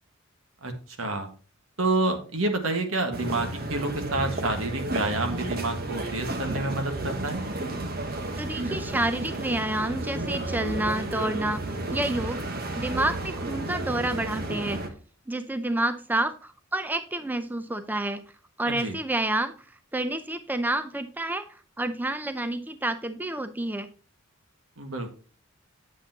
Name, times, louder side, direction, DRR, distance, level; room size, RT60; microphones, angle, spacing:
voice 1, 1.0-1.3 1.8-7.4 18.6-18.9 24.8-25.1, right 2 dB, 75° right, 5 dB, 1.6 m, -28 dB
sound 1, 3.1-14.9, right 2 dB, 45° right, 1.2 m, -32 dB
voice 2, 8.4-11.6 11.9-14.8 15.3-18.2 18.6-19.5 19.9-23.9, right 1 dB, 10° right, 10 dB, 0.4 m, -29 dB
8.3 x 7.9 x 2.8 m, 0.38 s
head